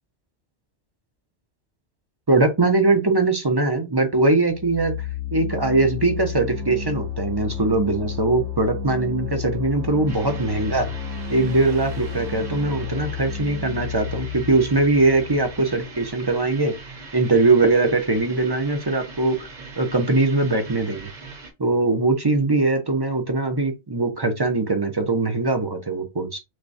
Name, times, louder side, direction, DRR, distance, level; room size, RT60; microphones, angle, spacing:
voice 1, 2.3-4.9 5.3-10.9 11.3-16.7 17.1-19.5 19.8-21.1 21.6-26.4, right 2 dB, 30° right, 0.5 m, -21 dB
sound 1, 4.4-16.1, left 7 dB, 85° right, 1.2 m, -32 dB
sound 2, 10.1-21.5, right 4 dB, 45° right, 1.0 m, -41 dB
6.4 x 2.2 x 2.6 m
omnidirectional pair, 1.2 m